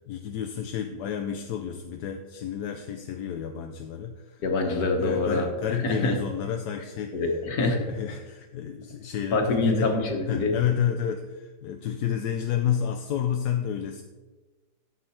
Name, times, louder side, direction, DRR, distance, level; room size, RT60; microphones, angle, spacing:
voice 1, 0.1-7.3 7.6-9.9 10.3-14.0, left 9 dB, 70° left, 6 dB, 1.1 m, -30 dB
voice 2, 4.4-6.2 7.1-7.9 9.3-10.5, left 3 dB, 55° left, 3 dB, 1.8 m, -25 dB
14.5 x 5.5 x 4.3 m, 1.2 s
omnidirectional pair, 2.0 m